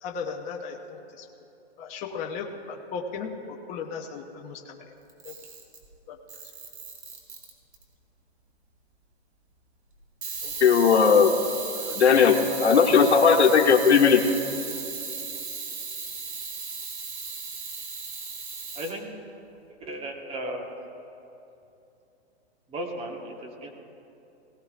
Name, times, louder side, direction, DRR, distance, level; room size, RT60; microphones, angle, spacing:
voice 1, 0.0-1.3 1.8-4.8 5.2-5.3 6.1-6.2, left 5 dB, 25° left, 1 dB, 0.8 m, -36 dB
Camera, 5.1-5.9 6.3-7.8 10.2-18.9, right 5 dB, 75° right, 3.0 m, -36 dB
voice 2, 10.6-11.3 11.7-14.2, left 6 dB, 85° left, 3 dB, 1.3 m, -18 dB
voice 3, 18.7-19.1 19.7-20.6 22.7-23.7, right 1 dB, 20° right, 1 dB, 1.3 m, -35 dB
17.5 x 17.5 x 2.5 m, 2.8 s
hypercardioid pair, 135°, 33 cm